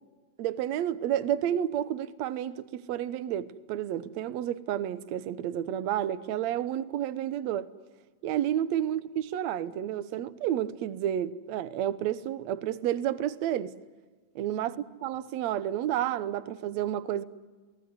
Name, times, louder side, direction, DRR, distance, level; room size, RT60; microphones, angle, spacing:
voice 1, 0.4-7.7 8.2-13.8 14.4-17.2, right 11 dB, 65° right, 1.9 m, -30 dB
28.5 x 19.0 x 9.7 m
omnidirectional pair, 3.9 m